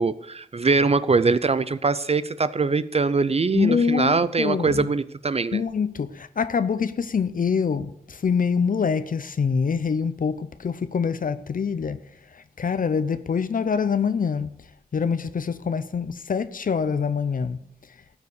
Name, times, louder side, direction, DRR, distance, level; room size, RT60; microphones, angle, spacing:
voice 1, 0.0-5.6, right 4 dB, 40° right, 0.5 m, -22 dB
voice 2, 3.5-4.9 5.5-12.0 12.3-14.5 14.9-17.6, left 6 dB, 60° left, 0.6 m, -25 dB
13.0 x 7.1 x 6.5 m
cardioid pair, 55°, 16 cm